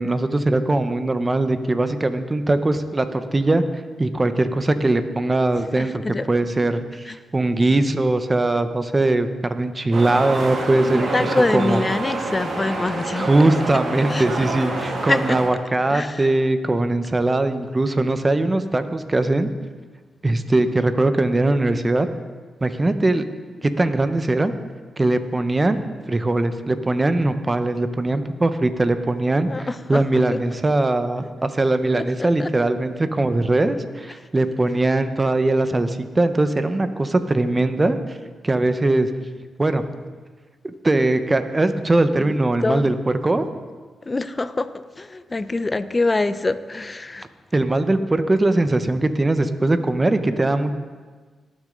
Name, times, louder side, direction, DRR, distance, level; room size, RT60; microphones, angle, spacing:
voice 1, 0.0-3.6 4.0-6.0 6.3-11.1 11.5-11.8 13.2-19.5 20.2-22.1 22.6-23.2 23.6-24.5 25.0-25.8 26.1-38.2 38.4-39.1 39.6-39.8 40.6-42.9 43.2-43.4 47.5-50.7, right 2 dB, 30° right, 1.0 m, -20 dB
voice 2, 5.8-6.3 7.0-7.2 10.8-13.3 14.0-14.3 15.0-15.4 15.9-16.3 29.5-30.4 31.9-32.0 32.4-32.5 42.3-42.4 42.6-43.0 44.0-47.3, left 2 dB, 30° left, 0.6 m, -25 dB
sound 1, 9.9-15.5, right 2 dB, 65° right, 2.3 m, -27 dB
19.0 x 6.5 x 4.0 m
supercardioid pair, 50°, 0 cm